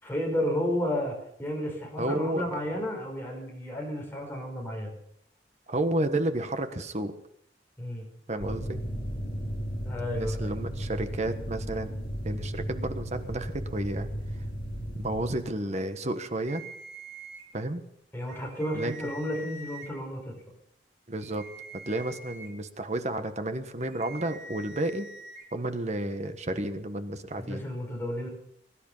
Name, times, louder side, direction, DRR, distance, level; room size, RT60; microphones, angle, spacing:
voice 1, 0.0-5.0 7.8-8.1 9.8-10.5 18.1-20.3 27.4-28.3, equal, 15° left, 0 dB, 4.9 m, -32 dB
voice 2, 2.0-2.4 5.7-7.1 8.3-8.8 10.2-12.0 12.2-14.1 14.9-16.6 17.5-17.8 18.7-18.9 21.1-21.4 21.9-25.1 25.5-27.6, right 1 dB, 40° right, 9 dB, 1.3 m, -31 dB
sound 1, 8.4-15.4, equal, 80° left, 5.2 m, -35 dB
sound 2, 16.5-17.4 18.2-19.9 21.2-22.5 23.8-25.4, right 2 dB, 80° right, 4.7 m, -45 dB
22.0 x 11.5 x 5.6 m, 0.70 s
head